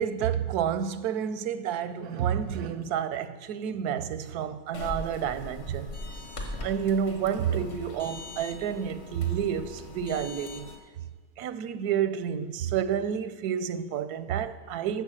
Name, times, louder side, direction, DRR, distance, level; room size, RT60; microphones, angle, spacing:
voice 1, 0.0-5.9 6.6-10.7 11.4-15.0, right 8 dB, 90° right, 1.2 m, -29 dB
sound 1, 4.7-10.8, left 2 dB, 45° left, 1.6 m, -40 dB
13.5 x 7.1 x 6.3 m
omnidirectional pair, 1.6 m